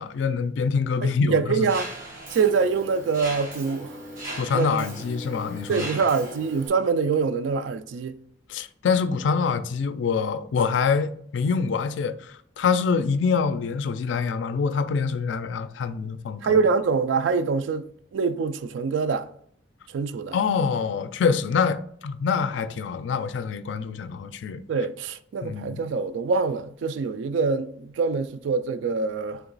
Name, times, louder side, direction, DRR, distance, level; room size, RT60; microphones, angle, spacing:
voice 1, 0.0-1.7 4.4-6.1 8.5-16.6 20.3-24.6 25.4-25.8, left 5 dB, 75° left, 0.4 m, -25 dB
voice 2, 1.0-1.9 2.3-3.9 4.5-4.9 5.7-8.1 16.4-17.9 18.1-19.3 19.9-20.4 24.7-29.4, right 5 dB, 85° right, 0.3 m, -24 dB
Mechanisms, 1.7-6.7, right 1 dB, 50° right, 1.7 m, -38 dB
3.4 x 3.0 x 3.8 m
head